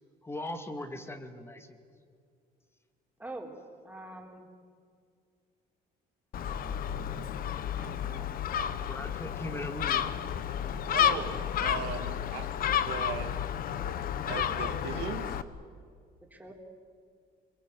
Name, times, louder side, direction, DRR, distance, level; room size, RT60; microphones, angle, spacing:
voice 1, 0.2-1.8 8.9-10.1, left 1 dB, 15° left, 7 dB, 2.2 m, -39 dB
voice 2, 3.2-3.5 3.8-4.5 7.8-8.3 16.3-16.5, right 2 dB, 10° right, 1 dB, 3.9 m, -44 dB
Gull seagull, 6.3-15.4, left 9 dB, 60° left, 1.1 m, -31 dB
voice 3, 10.9-12.5 12.8-13.3 14.3-15.4, right 8 dB, 85° right, 4 dB, 2.7 m, -38 dB
24.5 x 23.0 x 8.3 m, 2.2 s
cardioid pair, 110°, 17 cm